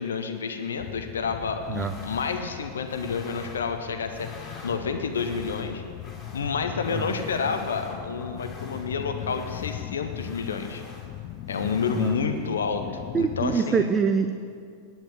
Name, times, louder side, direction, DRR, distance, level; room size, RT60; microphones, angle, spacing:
voice 1, 0.0-5.8 6.3-10.8 11.5-13.9, left 5 dB, 70° left, 6 dB, 0.7 m, -29 dB
sound 1, 0.8-13.6, left 13 dB, 40° left, 0.3 m, -39 dB
sound 2, 1.6-12.6, left 2 dB, 25° left, 2.3 m, -48 dB
voice 2, 13.1-14.3, right 6 dB, 20° right, 8 dB, 0.5 m, -24 dB
10.0 x 9.0 x 7.1 m, 2.3 s
figure-of-eight pair, 90°, 0 cm